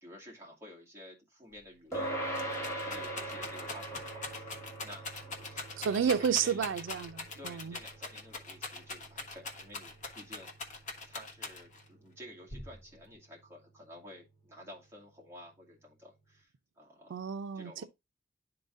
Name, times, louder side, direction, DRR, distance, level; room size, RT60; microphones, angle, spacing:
voice 1, 0.0-6.6 7.4-10.5 11.1-17.2 17.5-17.8, equal, 15° right, 2.2 m, -52 dB
Rattle, 1.6-1.7 1.9-11.9 12.5-13.1, left 3 dB, 40° left, 1.2 m, -42 dB
sound 1, 1.9-11.6, right 1 dB, 15° left, 1.8 m, -42 dB
voice 2, 5.8-7.8 17.1-17.8, right 7 dB, 85° right, 0.4 m, -31 dB
11.5 x 3.9 x 2.5 m
head